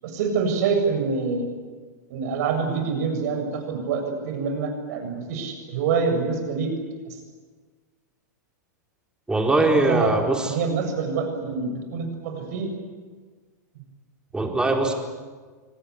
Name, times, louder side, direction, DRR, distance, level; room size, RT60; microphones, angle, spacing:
voice 1, 0.0-1.5 2.1-6.7 7.1-7.2 9.8-10.1 10.5-12.7, right 5 dB, 65° right, 5 dB, 7.4 m, -26 dB
voice 2, 9.3-10.5 14.3-14.9, right 2 dB, 10° right, 2 dB, 4.3 m, -21 dB
25.0 x 19.0 x 9.8 m, 1.5 s
hypercardioid pair, 110°, 10 cm